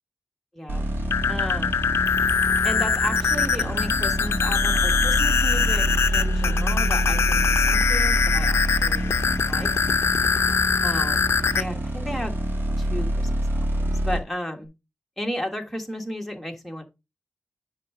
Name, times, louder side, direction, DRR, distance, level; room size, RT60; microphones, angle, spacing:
voice 1, 0.5-0.9 1.3-1.8 2.6-9.7 10.8-12.3 12.8-14.7 15.2-16.8, equal, ahead, 3 dB, 1.5 m, -34 dB
sound 1, 0.7-14.2, right 1 dB, 60° right, 2.5 m, -27 dB
sound 2, 1.0-11.6, left 6 dB, 80° left, 0.5 m, -23 dB
9.9 x 3.7 x 4.8 m, 0.24 s
wide cardioid pair, 155°, 4 cm